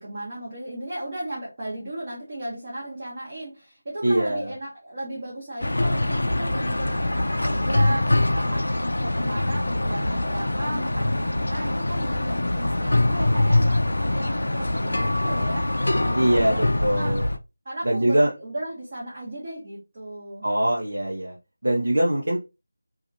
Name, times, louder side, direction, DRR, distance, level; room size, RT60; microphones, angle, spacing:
voice 1, 0.0-17.2 17.6-20.4, right 1 dB, 30° right, -7 dB, 1.0 m, -35 dB
voice 2, 4.0-4.5 16.1-17.2 17.8-18.3 20.4-21.4 21.6-22.4, right 1 dB, 75° right, -3 dB, 0.7 m, -22 dB
sound 1, 5.6-17.4, left 1 dB, 80° left, 0.3 m, -24 dB
2.8 x 2.4 x 2.5 m, 0.27 s
figure-of-eight pair, 175°, 0 cm